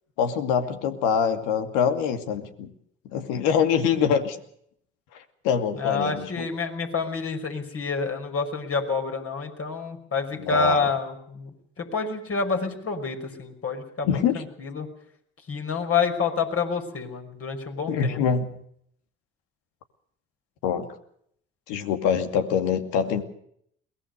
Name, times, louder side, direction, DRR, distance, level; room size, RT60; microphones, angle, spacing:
voice 1, 0.2-2.7 3.1-4.4 5.4-6.5 10.3-10.8 14.0-14.4 17.9-18.5 20.6-20.9 21.7-23.2, left 7 dB, 75° left, 7 dB, 2.5 m, -24 dB
voice 2, 5.8-11.5 11.8-14.9 15.5-18.2, left 4 dB, 45° left, 4 dB, 5.5 m, -28 dB
22.5 x 18.5 x 6.6 m, 0.69 s
hypercardioid pair, 65°, 32 cm